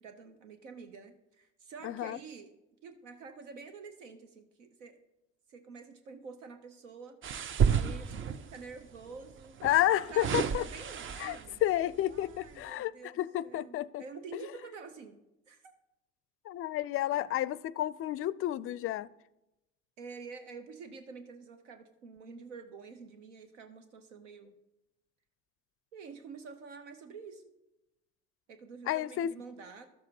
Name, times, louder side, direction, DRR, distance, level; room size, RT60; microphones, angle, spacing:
voice 1, 0.0-2.5 2.8-5.0 5.5-9.6 10.1-11.6 12.1-15.2 15.5-15.7 20.0-24.5 25.9-27.4 28.5-29.9, right 5 dB, 85° right, 0.7 m, -48 dB
voice 2, 1.8-2.2 9.6-10.6 11.2-14.0 14.3-14.4 16.5-19.1 28.9-29.3, left 13 dB, 40° left, 0.4 m, -31 dB
sound 1, 7.2-8.6 9.6-11.6 12.2-12.4, right 7 dB, 35° right, 0.5 m, -31 dB
12.5 x 7.2 x 2.8 m
hypercardioid pair, 55°, 36 cm